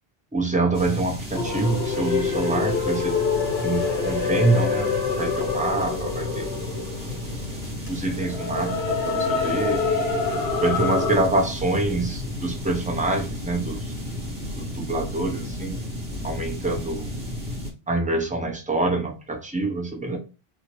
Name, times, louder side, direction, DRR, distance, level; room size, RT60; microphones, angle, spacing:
voice 1, 0.3-3.2 3.6-4.9 5.2-6.5 7.9-9.8 10.6-13.9 14.6-15.8 16.2-17.1 17.9-20.2, right 2 dB, 10° right, 2 dB, 0.3 m, -25 dB
sound 1, 0.7-17.7, left 1 dB, 45° right, 1.3 m, -33 dB
sound 2, 1.3-11.2, left 5 dB, 65° left, 1.0 m, -26 dB
2.8 x 2.7 x 3.0 m, 0.31 s
omnidirectional pair, 1.1 m